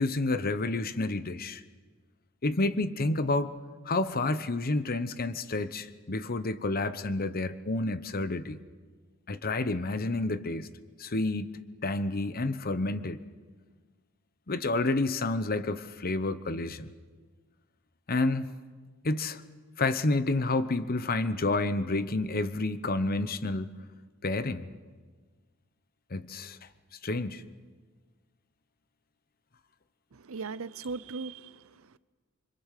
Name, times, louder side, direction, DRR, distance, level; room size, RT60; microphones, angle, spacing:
voice 1, 0.0-1.6 2.4-3.5 3.8-8.6 9.3-10.7 11.0-13.2 14.5-16.9 18.1-18.5 19.0-19.4 19.8-23.7 24.2-24.7 26.1-26.6 27.0-27.4, left 2 dB, 45° left, 1.0 m, -29 dB
voice 2, 30.1-32.0, right 4 dB, 70° right, 0.7 m, -39 dB
26.0 x 25.0 x 6.7 m
head